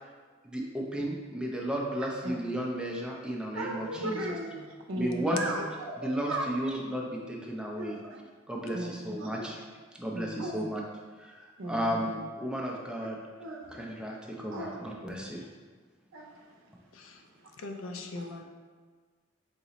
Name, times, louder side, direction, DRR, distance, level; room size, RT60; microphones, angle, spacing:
voice 1, 0.4-4.2 5.0-5.4 6.0-8.0 8.5-9.6 10.0-10.8 11.2-13.2 13.7-15.5, equal, 5° right, -1 dB, 0.4 m, -34 dB
voice 2, 2.0-2.4 3.5-4.5 4.9-6.5 7.8-8.0 8.7-9.5 10.1-10.6 11.6-12.1 13.4-13.8 14.5-14.9 16.1-16.6 17.3-17.6 18.2-18.3, right 1 dB, 65° right, 1 dB, 0.6 m, -37 dB
voice 3, 4.0-4.6 16.9-17.2 17.6-18.4, left 2 dB, 70° left, 4 dB, 0.4 m, -41 dB
4.8 x 2.0 x 4.0 m, 1.5 s
head